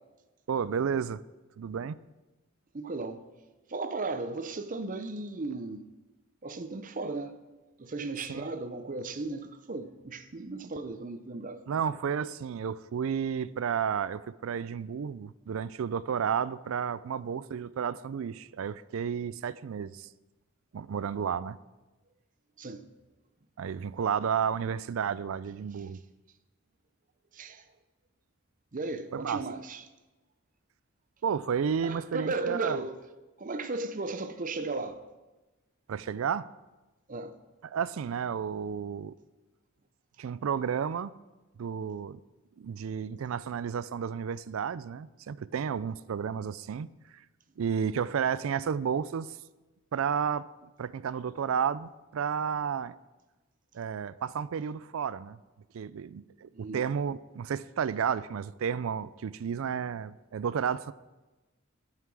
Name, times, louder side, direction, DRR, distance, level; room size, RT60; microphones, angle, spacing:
voice 1, 0.5-1.2 1.6-2.0 8.3-8.5 11.7-20.1 20.7-21.6 23.6-26.0 29.1-29.4 31.2-32.8 35.9-36.5 37.6-39.2 40.2-41.1 41.6-42.2 42.6-46.9 47.1-47.2 47.6-49.4 49.9-50.5 50.8-52.9 53.7-55.4 55.7-60.9, right 7 dB, 75° right, 0.4 m, -32 dB
voice 2, 2.7-3.2 3.7-5.8 6.4-7.3 7.8-11.6 22.6-22.8 27.3-27.6 28.7-29.8 31.8-33.0 33.4-35.0 37.1-37.3 56.5-56.9, right 3 dB, 40° right, 0.6 m, -35 dB
14.5 x 5.7 x 4.7 m
head